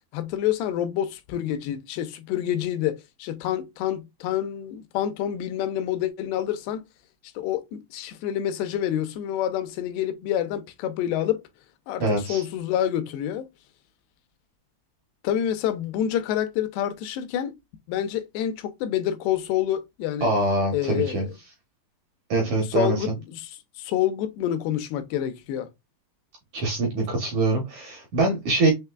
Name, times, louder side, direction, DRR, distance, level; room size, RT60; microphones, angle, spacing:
voice 1, 0.1-6.8 7.4-11.4 11.9-13.5 15.2-17.5 17.9-20.3 20.7-21.3 22.8-25.7, left 11 dB, 80° left, 2.7 m, -27 dB
voice 2, 12.0-12.4 20.2-21.2 22.3-23.0 26.5-28.7, right 2 dB, 75° right, 1.7 m, -24 dB
6.6 x 3.1 x 2.3 m
omnidirectional pair, 4.9 m